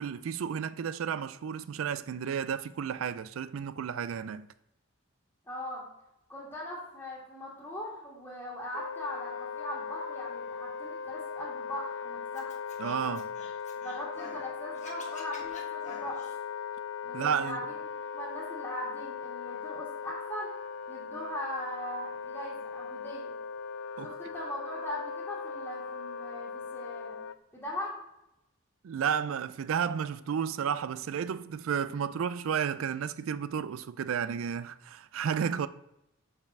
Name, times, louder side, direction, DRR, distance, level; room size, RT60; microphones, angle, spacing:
voice 1, 0.0-4.5 12.8-13.3 17.1-17.6 24.0-24.1 28.8-35.7, right 7 dB, 85° right, 0.4 m, -32 dB
voice 2, 5.4-5.8 6.3-12.5 13.8-16.2 17.0-17.8 18.1-20.6 20.9-23.3 24.0-27.2 27.5-28.0, equal, 15° left, 1.6 m, -40 dB
Wind instrument woodwind instrument, 8.7-27.4, left 6 dB, 75° left, 0.3 m, -39 dB
Scratching (performance technique), 12.4-14.5 14.7-16.3, left 4 dB, 35° left, 1.1 m, -49 dB
5.3 x 4.8 x 5.9 m
head